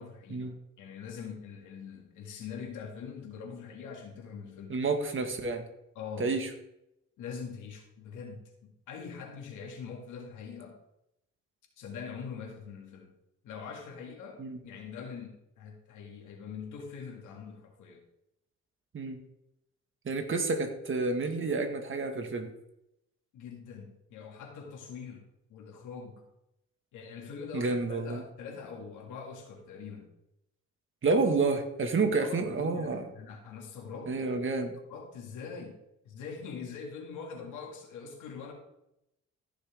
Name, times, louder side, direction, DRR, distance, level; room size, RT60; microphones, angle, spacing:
voice 1, 0.0-4.8 6.0-6.3 7.2-10.8 11.8-13.1 13.4-18.0 23.3-25.2 25.5-26.3 26.9-30.1 32.0-34.1 34.9-35.8 36.0-38.5, left 6 dB, 85° left, 1 dB, 2.3 m, -43 dB
voice 2, 4.7-5.6 6.2-6.5 14.4-14.6 18.9-19.2 20.1-22.5 27.5-28.2 31.0-33.0 34.1-34.8, right 3 dB, 40° right, 6 dB, 1.8 m, -29 dB
14.5 x 6.4 x 3.6 m, 0.83 s
cardioid pair, 90°, 30 cm